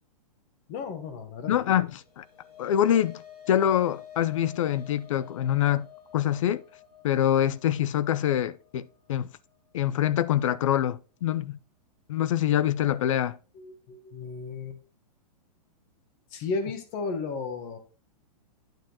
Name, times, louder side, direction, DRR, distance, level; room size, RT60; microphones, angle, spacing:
voice 1, 0.7-1.6 13.5-14.8 16.3-17.8, left 4 dB, 25° left, 1.2 m, -34 dB
voice 2, 1.5-1.9 2.2-2.3 2.6-3.2 3.5-5.9 6.1-6.6 7.0-9.3 9.7-11.6 12.1-13.4, left 11 dB, 55° left, 0.5 m, -25 dB
sound 1, 1.9-10.4, left 9 dB, 80° left, 4.1 m, -51 dB
9.0 x 7.4 x 2.9 m
hypercardioid pair, 170°, 20 cm